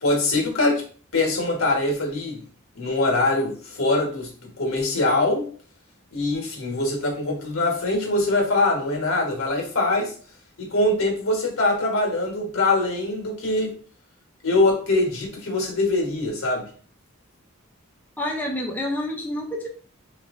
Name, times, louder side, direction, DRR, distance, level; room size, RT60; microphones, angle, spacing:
voice 1, 0.0-0.8 1.1-2.4 2.7-5.5 6.1-10.1 10.6-13.8 14.4-16.7, left 2 dB, 80° left, 1.4 m, -23 dB
voice 2, 18.2-19.7, left 1 dB, 10° left, 0.5 m, -28 dB
3.5 x 3.1 x 3.6 m
head